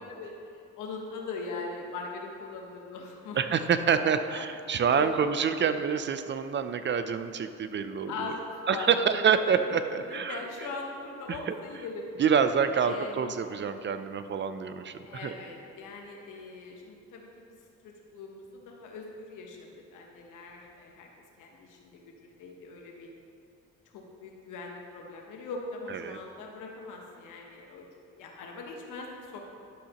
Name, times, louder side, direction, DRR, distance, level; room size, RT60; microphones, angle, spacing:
voice 1, 0.8-4.1 4.3-4.4 4.7-5.1 8.1-9.2 10.1-12.1 12.8-13.3 15.0-17.6 17.8-21.1 21.4-23.1 23.9-27.9 28.2-29.4, left 3 dB, 85° left, 1 dB, 1.1 m, -41 dB
voice 2, 3.4-8.3 8.7-10.7 11.3-11.5 12.2-15.3 25.9-26.2, right 7 dB, 40° right, 9 dB, 0.5 m, -27 dB
11.5 x 6.4 x 2.9 m, 2.5 s
cardioid pair, 90°, 30 cm